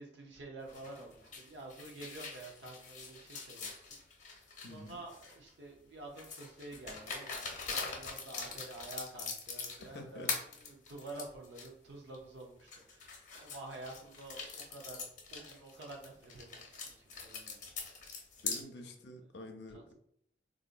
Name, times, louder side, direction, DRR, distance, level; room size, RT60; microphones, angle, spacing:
voice 1, 0.0-17.7 18.0-18.1 19.7-19.9, right 2 dB, 85° right, 1 dB, 0.6 m, -49 dB
sound 1, 0.7-5.5 6.2-10.0 10.3-11.7 12.1-12.2 12.7-18.6, left 4 dB, 45° left, 0.8 m, -43 dB
voice 2, 4.6-5.0 9.8-10.3 18.4-19.9, left 1 dB, 75° left, 5 dB, 0.5 m, -48 dB
3.8 x 2.5 x 2.4 m, 0.68 s
head